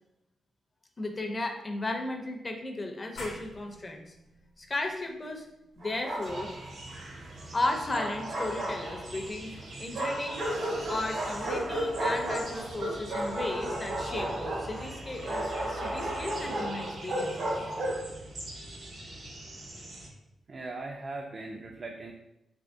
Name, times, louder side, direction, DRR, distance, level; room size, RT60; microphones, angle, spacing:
voice 1, 1.0-4.1 4.6-5.5 5.8-6.5 7.5-10.5 10.9-17.6, left 2 dB, 25° left, 3 dB, 0.5 m, -35 dB
sound 1, 3.2-8.5, left 1 dB, 85° left, 0.7 m, -49 dB
Bark, 5.8-6.7 7.6-9.2 9.9-18.1, right 1 dB, 85° right, 1.4 m, -33 dB
sound 2, 6.2-20.1, right 1 dB, 60° right, 0.8 m, -43 dB
voice 2, 20.5-22.1, right 2 dB, 45° right, 1 dB, 0.3 m, -39 dB
3.4 x 2.8 x 2.6 m, 0.87 s
cardioid pair, 105°, 0 cm